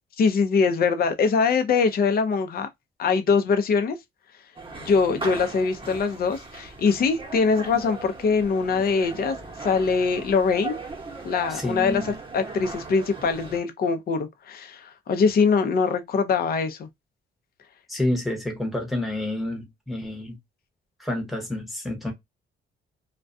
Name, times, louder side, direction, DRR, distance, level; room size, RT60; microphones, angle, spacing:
voice 1, 0.2-2.7 3.0-4.0 4.8-9.4 9.6-10.8 11.2-12.0 12.3-16.9, left 5 dB, 50° left, 0.6 m, -23 dB
sound 1, 4.6-13.6, right 3 dB, 25° right, 0.9 m, -38 dB
voice 2, 11.5-12.1 17.9-20.4 21.0-22.1, left 1 dB, ahead, 0.9 m, -29 dB
2.3 x 2.2 x 2.5 m
cardioid pair, 90°, 20 cm